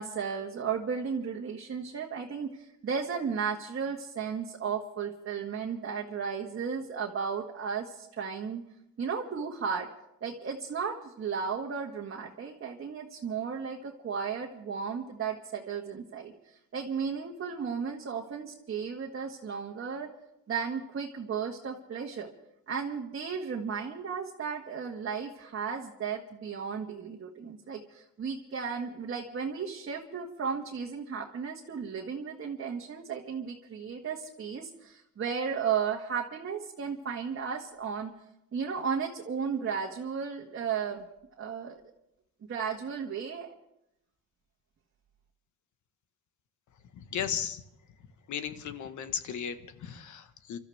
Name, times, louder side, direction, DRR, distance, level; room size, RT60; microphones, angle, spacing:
voice 1, 0.0-8.6 9.0-9.9 10.2-16.3 16.7-20.1 20.5-22.3 22.7-38.1 38.5-41.1 41.4-41.8 42.5-43.5, right 6 dB, 45° right, -1 dB, 1.7 m, -34 dB
voice 2, 46.9-47.6 48.3-50.6, left 8 dB, 75° left, 10 dB, 1.4 m, -35 dB
27.5 x 13.0 x 3.5 m, 0.82 s
cardioid pair, 90°, 30 cm